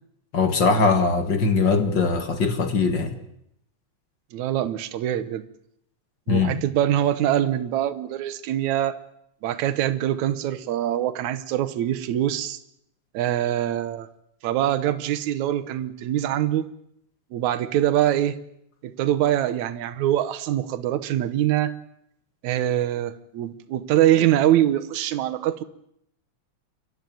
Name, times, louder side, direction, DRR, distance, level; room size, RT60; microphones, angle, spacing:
voice 1, 0.3-3.1 6.3-6.6, left 4 dB, 45° left, 7 dB, 2.0 m, -21 dB
voice 2, 4.3-5.4 6.3-9.0 9.4-12.6 13.1-14.1 14.4-16.6 17.3-18.4 18.8-21.7 22.4-25.6, right 12 dB, 75° right, 10 dB, 2.4 m, -23 dB
28.0 x 12.5 x 9.3 m, 0.76 s
omnidirectional pair, 3.4 m